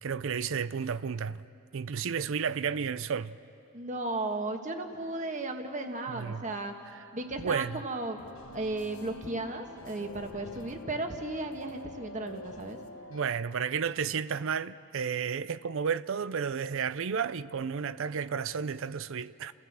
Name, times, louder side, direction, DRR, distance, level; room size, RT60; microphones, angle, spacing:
voice 1, 0.0-1.4 1.7-3.4 6.1-6.4 7.4-7.8 13.1-19.5, right 6 dB, 65° right, 0.5 m, -32 dB
voice 2, 3.7-6.7 7.1-8.2 8.5-12.8, right 2 dB, 35° right, 1.5 m, -35 dB
sound 1, 8.2-13.2, equal, 80° left, 1.3 m, -46 dB
30.0 x 16.0 x 7.4 m
head